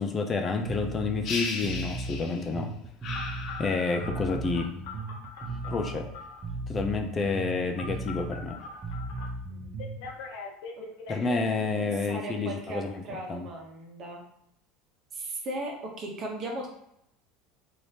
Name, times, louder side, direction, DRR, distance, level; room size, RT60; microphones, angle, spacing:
voice 1, 0.0-2.7 3.6-4.7 5.6-6.1 6.7-8.6 11.1-13.5, left 4 dB, 30° left, 4 dB, 0.4 m, -29 dB
Bass guitar, 0.6-10.1, right 3 dB, 25° right, 0.7 m, -37 dB
sound 1, 1.2-2.6 3.0-4.3, left 4 dB, 50° left, 1.0 m, -36 dB
Telephone, 3.1-6.5 7.8-9.3 9.8-11.4, left 4 dB, 75° left, 0.6 m, -42 dB
voice 2, 11.2-14.2 15.1-16.7, right 2 dB, 50° right, 1 dB, 1.0 m, -38 dB
3.2 x 2.7 x 2.8 m, 0.76 s
supercardioid pair, 95°, 0 cm